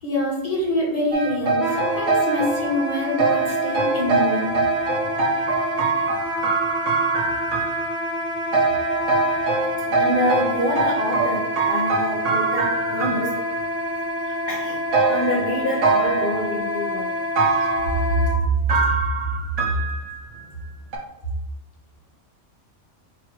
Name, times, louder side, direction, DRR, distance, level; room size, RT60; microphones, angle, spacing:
voice 1, 0.0-4.5 17.6-17.7 18.2-18.3, left 1 dB, 30° left, -3 dB, 1.2 m, -25 dB
sound 1, 1.1-2.7 3.2-8.1 8.5-13.6 14.9-16.3 17.4-17.9 18.7-20.4 20.9-21.0, right 3 dB, 85° right, 1.0 m, -23 dB
Wind instrument woodwind instrument, 1.6-18.4, left 1 dB, 65° right, 1.0 m, -28 dB
voice 2, 9.9-13.3 14.3-14.8 15.1-17.1, left 1 dB, 55° left, -4 dB, 0.8 m, -26 dB
3.8 x 2.4 x 4.6 m, 0.92 s
omnidirectional pair, 1.3 m